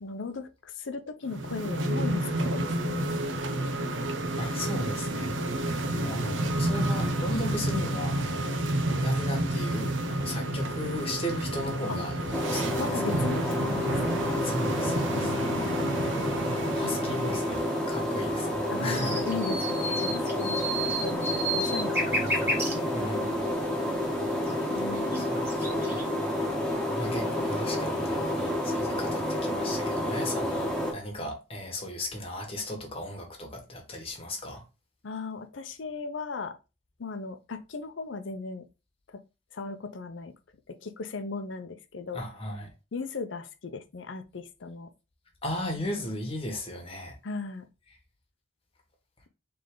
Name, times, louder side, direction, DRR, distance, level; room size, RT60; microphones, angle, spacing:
voice 1, 0.0-3.1 11.9-12.0 12.8-14.4 15.1-16.0 18.7-23.0 24.7-25.4 35.0-36.6 37.0-38.6 39.5-40.3 40.7-42.2 42.9-44.9 47.2-47.7, left 4 dB, 75° left, 0.6 m, -37 dB
sound 1, 1.3-17.9, right 1 dB, 80° right, 0.7 m, -30 dB
voice 2, 4.3-8.6 9.0-13.3 14.4-15.3 15.6-17.6 17.9-19.4 22.2-22.5 22.9-23.5 24.6-24.9 25.2-26.0 27.0-34.6 42.1-42.7 45.4-47.1, left 1 dB, 30° left, 1.3 m, -36 dB
sound 2, 12.3-30.9, left 1 dB, 5° left, 1.1 m, -29 dB
sound 3, 18.9-22.7 24.5-24.6 24.9-26.0, right 1 dB, 15° right, 1.3 m, -31 dB
3.7 x 3.3 x 3.8 m
head